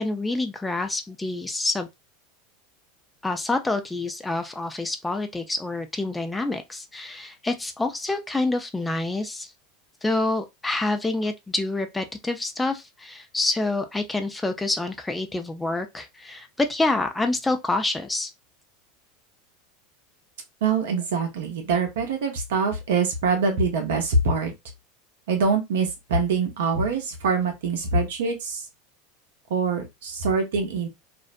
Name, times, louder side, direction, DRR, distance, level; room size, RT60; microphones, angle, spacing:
voice 1, 0.0-1.9 3.2-9.5 10.0-18.3, left 2 dB, 10° left, 0.4 m, -27 dB
voice 2, 20.6-24.5 25.3-28.7 29.5-30.9, right 4 dB, 75° right, 0.7 m, -24 dB
2.5 x 2.0 x 2.5 m
hypercardioid pair, 85°, 0 cm